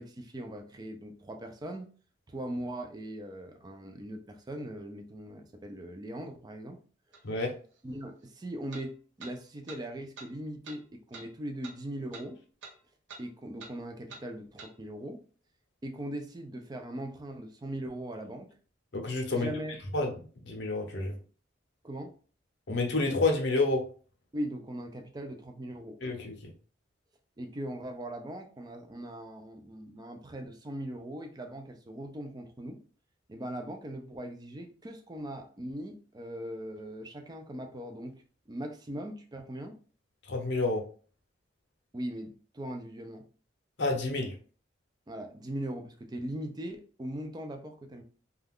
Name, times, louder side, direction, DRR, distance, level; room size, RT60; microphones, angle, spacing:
voice 1, 0.0-1.9 2.3-6.8 7.8-12.4 13.2-15.2 15.8-18.5 19.3-19.8 21.8-22.1 24.3-26.0 27.4-32.8 33.3-38.1 38.5-39.8 41.9-43.2 45.1-48.0, right 1 dB, 20° right, 5 dB, 0.4 m, -40 dB
sound 1, 7.1-7.2 8.7-8.9 9.2-9.3 9.7-9.8 10.2-10.3 10.6-10.8 11.1-11.3 11.6-11.8 12.1-12.3 12.6-12.8 13.1-13.2 13.6-13.7 14.1-14.2 14.6-14.7, right 4 dB, 65° right, 0.6 m, -46 dB
voice 2, 18.9-19.5 19.9-20.1 20.5-21.1 22.7-23.8 26.0-26.5 40.3-40.8 43.8-44.3, left 2 dB, 60° left, 2 dB, 0.7 m, -29 dB
2.3 x 2.3 x 3.4 m, 0.40 s
head